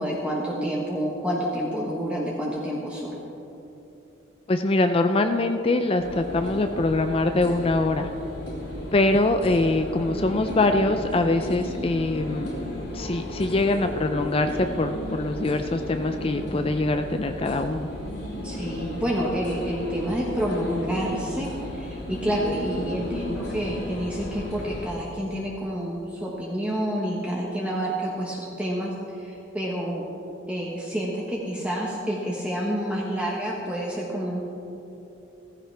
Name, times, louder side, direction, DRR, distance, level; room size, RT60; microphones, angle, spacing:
voice 1, 0.0-3.2 18.4-28.9 29.2-30.1 30.5-34.4, equal, 5° right, -4 dB, 1.2 m, -28 dB
voice 2, 4.5-8.1 8.9-12.5 12.9-17.9, left 2 dB, 25° left, 7 dB, 0.4 m, -23 dB
sound 1, 6.0-24.9, left 1 dB, 60° left, 3.2 m, -34 dB
15.5 x 15.0 x 3.4 m, 3.0 s
head